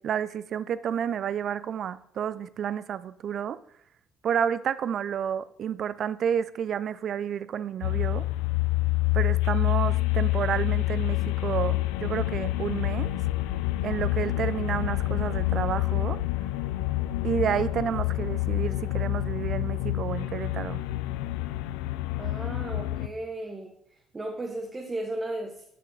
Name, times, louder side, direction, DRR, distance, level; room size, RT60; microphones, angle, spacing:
voice 1, 0.0-3.6 4.2-8.3 9.1-13.1 13.8-16.2 17.2-20.8, right 8 dB, 60° right, 0.4 m, -30 dB
sound 1, 7.8-23.1, left 17 dB, 90° left, 0.4 m, -27 dB
voice 2, 22.2-25.6, right 2 dB, 25° right, 1.1 m, -35 dB
9.3 x 5.5 x 3.9 m
supercardioid pair, 70°, 0 cm